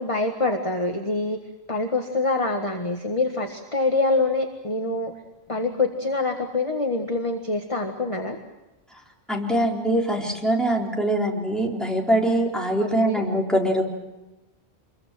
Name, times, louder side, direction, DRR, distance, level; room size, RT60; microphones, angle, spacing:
voice 1, 0.0-1.4 1.7-5.1 5.5-8.4 12.8-13.2, left 3 dB, 30° left, 3 dB, 1.7 m, -25 dB
voice 2, 9.3-13.8, right 1 dB, ahead, -2 dB, 3.9 m, -23 dB
26.5 x 22.5 x 7.6 m, 1.0 s
omnidirectional pair, 1.1 m